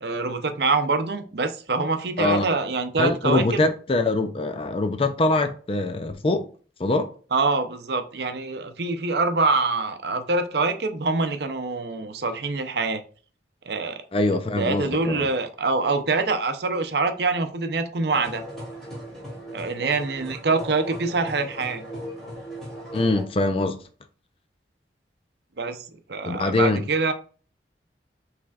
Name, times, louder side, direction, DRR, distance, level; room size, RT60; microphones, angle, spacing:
voice 1, 0.0-3.7 7.3-13.0 13.7-14.0 14.6-18.4 19.5-21.9 25.6-27.1, right 3 dB, 65° right, 0.6 m, -25 dB
voice 2, 3.0-6.5 6.8-7.1 14.1-15.3 22.9-23.8 26.2-26.8, left 2 dB, 30° left, 0.5 m, -23 dB
sound 1, 18.1-23.2, equal, ahead, 2.4 m, -37 dB
5.9 x 3.3 x 2.4 m
head